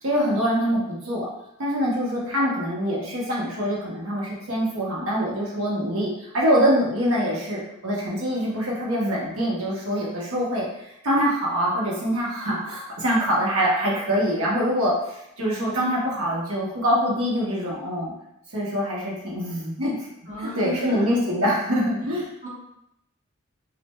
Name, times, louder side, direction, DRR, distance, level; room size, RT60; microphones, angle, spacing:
voice 1, 0.0-1.3 1.6-18.1 18.5-20.1 20.4-22.3, equal, 85° right, -4 dB, 1.1 m, -24 dB
voice 2, 20.3-21.1 22.4-22.5, left 1 dB, 35° right, -6 dB, 1.0 m, -33 dB
6.0 x 2.5 x 2.2 m, 0.80 s
head